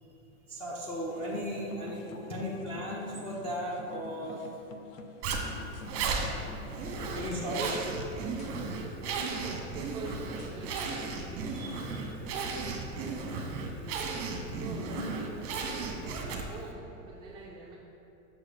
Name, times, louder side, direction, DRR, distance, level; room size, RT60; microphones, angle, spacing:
voice 1, 0.5-4.3 7.1-7.8 11.5-12.2 15.0-15.1, equal, 15° left, -7 dB, 0.9 m, -36 dB
sound 1, 1.1-7.3, left 4 dB, 65° left, 0.8 m, -48 dB
Zipper (clothing), 5.2-16.7, right 4 dB, 35° right, 1.1 m, -35 dB
sound 2, 5.7-6.6 7.2-7.4 7.7-9.2 10.0-10.9, left 4 dB, 85° left, 1.0 m, -51 dB
voice 2, 9.1-11.4 12.9-13.5 14.4-17.8, right 3 dB, 10° right, -5 dB, 0.5 m, -45 dB
6.0 x 4.8 x 6.4 m, 2.8 s
supercardioid pair, 140°, 42 cm